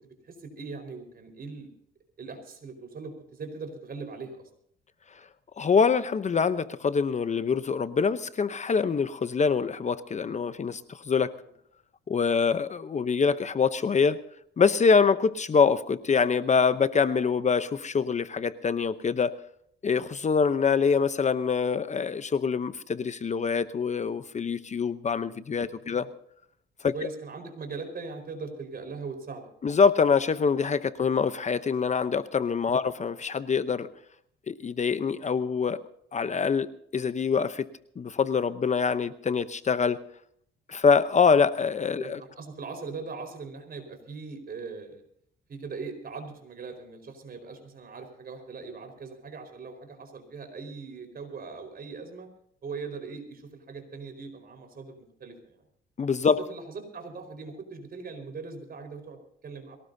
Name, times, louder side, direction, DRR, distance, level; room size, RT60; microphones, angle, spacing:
voice 1, 0.2-1.7 2.2-4.4 25.7-26.0 26.9-29.4 41.9-45.0 45.5-52.3 52.6-55.6 56.5-59.8, right 4 dB, 50° right, 6 dB, 4.7 m, -40 dB
voice 2, 5.6-11.3 12.1-14.2 14.6-19.3 19.8-26.1 26.8-26.9 29.6-33.9 34.5-35.8 36.1-37.7 38.0-40.0 40.7-42.2 56.0-56.4, left 5 dB, 35° left, 12 dB, 0.8 m, -25 dB
22.5 x 18.0 x 2.7 m, 0.65 s
cardioid pair, 90°, 20 cm